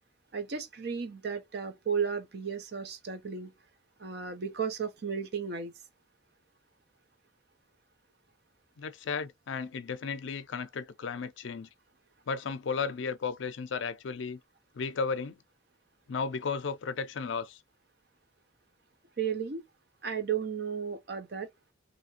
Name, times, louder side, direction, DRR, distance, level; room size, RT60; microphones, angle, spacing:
voice 1, 0.3-3.5 4.0-5.7 19.2-19.6 20.0-21.5, right 6 dB, 55° right, 0.6 m, -34 dB
voice 2, 8.8-11.7 12.3-14.4 14.7-15.4 16.1-17.6, left 5 dB, 75° left, 0.4 m, -34 dB
2.7 x 2.5 x 2.8 m
head